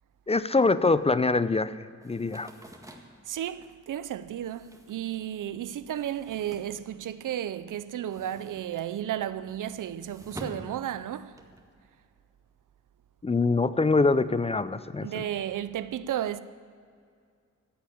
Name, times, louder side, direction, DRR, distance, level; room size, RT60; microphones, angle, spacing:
voice 1, 0.3-1.7 2.0-2.5 13.2-15.2, left 3 dB, 20° left, 0.4 m, -24 dB
sound 1, 2.0-7.4 7.7-11.6, equal, 10° right, 1.8 m, -48 dB
voice 2, 3.3-11.4 15.0-16.4, right 11 dB, 85° right, 0.6 m, -33 dB
14.5 x 8.2 x 8.5 m
wide cardioid pair, 100°, 31 cm